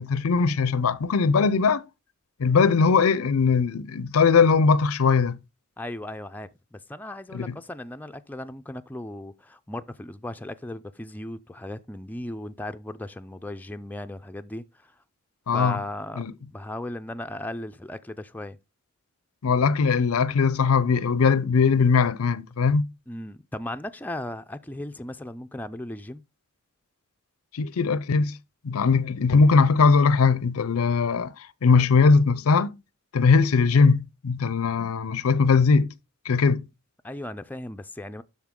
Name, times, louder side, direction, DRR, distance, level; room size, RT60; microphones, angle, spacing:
voice 1, 0.0-1.8 2.4-5.4 7.3-7.5 15.5-15.8 16.2-16.3 19.4-22.9 27.5-28.4 28.6-31.3 31.6-32.8 33.1-35.9 36.3-36.6, left 5 dB, 85° left, 0.5 m, -20 dB
voice 2, 5.8-14.9 15.5-16.2 16.5-18.6 23.1-26.2 36.5-36.6 37.0-38.2, left 1 dB, 10° left, 0.4 m, -36 dB
12.0 x 4.1 x 3.7 m
head